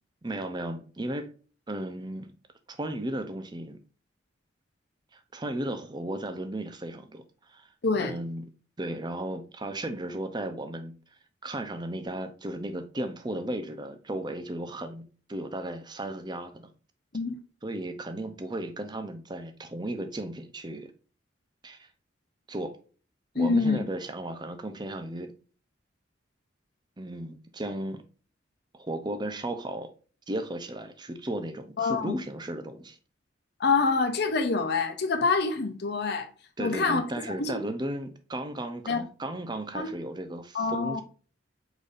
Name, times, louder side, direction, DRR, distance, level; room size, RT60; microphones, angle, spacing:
voice 1, 0.2-1.3 1.7-2.3 2.7-3.8 5.1-7.2 7.5-7.7 8.0-8.4 8.8-10.9 11.4-15.0 15.3-16.7 17.6-20.9 21.6-21.9 22.5-22.8 23.3-25.3 27.0-28.0 28.7-29.9 30.3-33.0 36.6-41.0, right 1 dB, 20° right, 0.5 m, -35 dB
voice 2, 7.8-8.2 17.1-17.4 23.3-23.8 31.8-32.2 33.6-36.3 36.6-37.0 37.3-37.6 38.9-39.0 39.7-39.9 40.5-41.0, left 4 dB, 55° left, 0.7 m, -26 dB
5.0 x 4.0 x 2.5 m
head